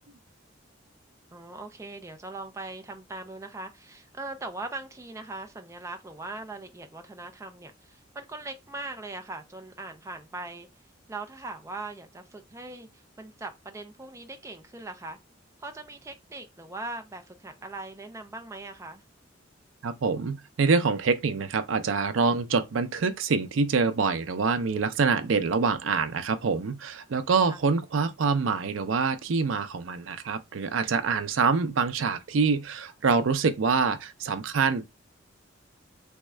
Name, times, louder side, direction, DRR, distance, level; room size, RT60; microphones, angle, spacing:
voice 1, 1.3-10.7 11.1-12.9 13.2-15.2 15.6-19.0 27.5-27.6, right 2 dB, 15° right, 0.4 m, -40 dB
voice 2, 19.8-34.9, right 5 dB, 85° right, 0.5 m, -25 dB
3.5 x 2.3 x 3.1 m
head